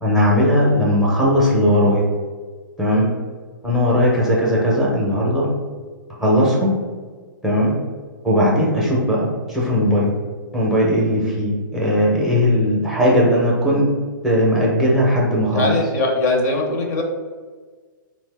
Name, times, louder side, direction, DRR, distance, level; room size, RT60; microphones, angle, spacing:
voice 1, 0.0-2.0 2.8-3.1 3.6-5.5 6.1-6.8 7.4-7.8 8.2-10.1 10.5-13.9 14.2-15.7, equal, 5° right, -6 dB, 0.5 m, -18 dB
voice 2, 15.5-17.0, left 2 dB, 50° left, 1 dB, 0.6 m, -20 dB
2.8 x 2.1 x 3.3 m, 1.5 s
hypercardioid pair, 135°, 11 cm